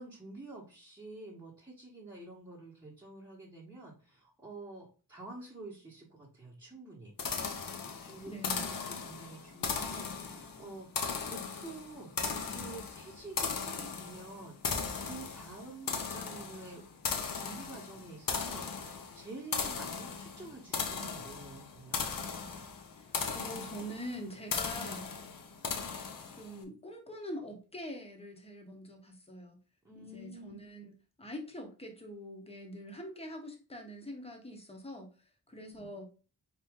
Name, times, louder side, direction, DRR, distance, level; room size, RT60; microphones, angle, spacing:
voice 1, 0.0-7.1 7.5-16.9 17.3-22.1 29.8-30.7 35.5-35.9, right 2 dB, 10° right, -7 dB, 1.1 m, -49 dB
sound 1, 7.2-26.6, left 5 dB, 55° left, 0.7 m, -38 dB
voice 2, 8.3-9.0 23.0-25.1 26.3-29.6 30.0-30.9 31.2-35.1 35.5-36.1, equal, 15° left, 3 dB, 0.9 m, -44 dB
4.1 x 3.0 x 3.5 m, 0.36 s
wide cardioid pair, 130°, 41 cm